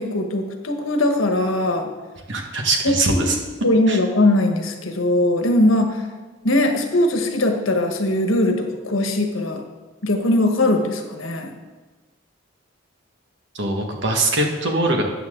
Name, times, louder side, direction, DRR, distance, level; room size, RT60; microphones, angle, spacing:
voice 1, 0.0-1.9 2.8-3.3 3.6-6.0 6.4-9.6 10.0-11.5, left 1 dB, 80° left, 5 dB, 1.3 m, -20 dB
voice 2, 2.3-3.4 3.9-4.0 13.5-15.0, right 2 dB, 60° right, 2 dB, 1.6 m, -22 dB
13.0 x 8.8 x 3.8 m, 1.3 s
head